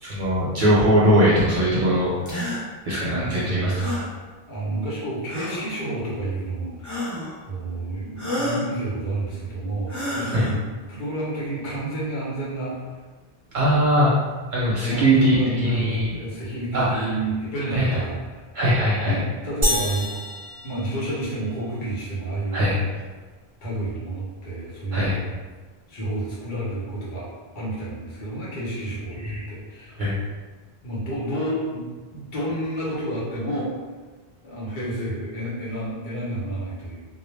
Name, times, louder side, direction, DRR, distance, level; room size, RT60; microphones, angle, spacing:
voice 1, 0.0-2.1 2.9-3.7 10.3-10.5 13.5-14.1 14.5-16.1 16.7-17.1 17.7-18.0 18.5-19.2 22.5-22.8 24.9-25.2 29.2-29.4 30.0-30.2, equal, 55° right, -7 dB, 0.7 m, -20 dB
sound 1, 2.3-2.6 3.8-4.1 5.3-5.7 6.8-7.4 8.2-8.7 9.9-10.6, left 1 dB, 25° left, 0.4 m, -29 dB
voice 2, 3.0-4.0 4.5-7.0 7.5-12.9 14.8-18.4 19.0-20.2 20.6-22.7 23.6-25.2 25.9-27.3 27.5-30.0 30.8-31.9 32.1-33.7 34.4-37.1, right 1 dB, 55° left, -7 dB, 0.9 m, -30 dB
sound 2, 19.6-21.5, equal, 25° right, 0.9 m, -27 dB
2.3 x 2.0 x 3.1 m, 1.4 s
omnidirectional pair, 1.0 m